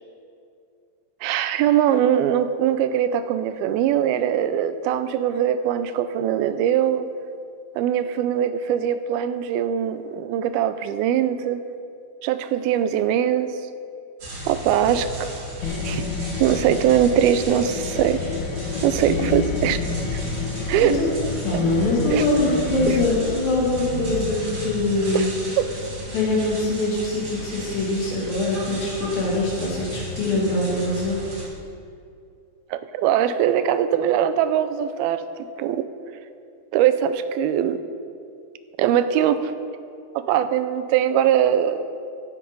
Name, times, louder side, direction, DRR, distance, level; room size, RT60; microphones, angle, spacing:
voice 1, 1.2-7.1 7.8-11.6 12.2-13.6 14.5-15.3 15.8-16.0 16.4-18.2 18.8-19.8 20.1-20.2 20.7-21.0 22.1-22.3 22.9-23.0 25.1-25.3 25.6-25.7 32.7-35.2 35.6-35.9 36.7-37.8 38.8-39.5 40.2-41.9, right 10 dB, 85° right, 11 dB, 2.5 m, -21 dB
sound 1, 14.2-31.4, equal, 50° right, 4.6 m, -34 dB
sound 2, 15.6-23.1, left 5 dB, 90° left, 2.9 m, -29 dB
voice 2, 20.8-21.1 21.4-25.3 26.1-31.3, left 2 dB, 70° left, -4 dB, 4.1 m, -23 dB
15.0 x 8.5 x 5.3 m, 2.4 s
omnidirectional pair, 4.3 m